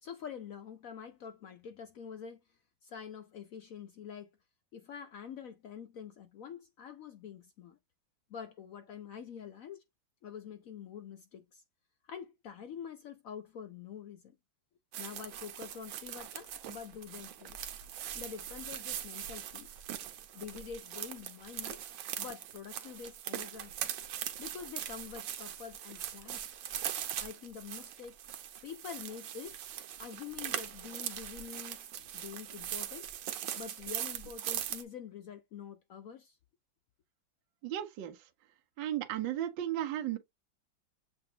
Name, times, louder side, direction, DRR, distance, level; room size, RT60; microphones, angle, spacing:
voice 1, 0.0-2.4 2.8-4.3 4.7-7.8 8.3-9.8 10.2-11.6 12.1-14.3 15.0-17.6 18.1-19.7 20.3-21.8 22.2-23.9 24.4-26.4 27.2-28.1 28.6-29.6 30.0-31.9 32.1-33.1 33.5-36.4, left 7 dB, 80° left, 0.7 m, -46 dB
sound 1, 14.9-34.8, right 10 dB, 90° right, 1.5 m, -41 dB
voice 2, 37.6-38.2 38.8-40.2, right 12 dB, 75° right, 1.4 m, -35 dB
7.6 x 2.6 x 2.7 m
omnidirectional pair, 2.1 m